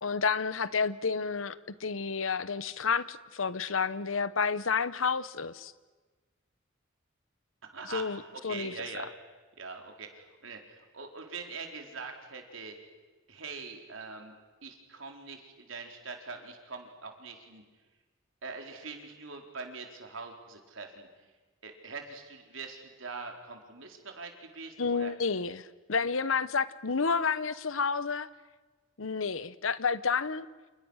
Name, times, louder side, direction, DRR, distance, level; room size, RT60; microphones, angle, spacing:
voice 1, 0.0-5.7 7.8-9.1 24.8-28.3 29.0-30.5, left 5 dB, 90° left, 16 dB, 1.0 m, -30 dB
voice 2, 7.6-9.1 9.6-12.8 13.3-14.3 14.6-17.6 18.4-21.1 21.6-25.1, right 4 dB, 75° right, 3 dB, 4.2 m, -43 dB
29.5 x 28.5 x 6.5 m, 1.3 s
head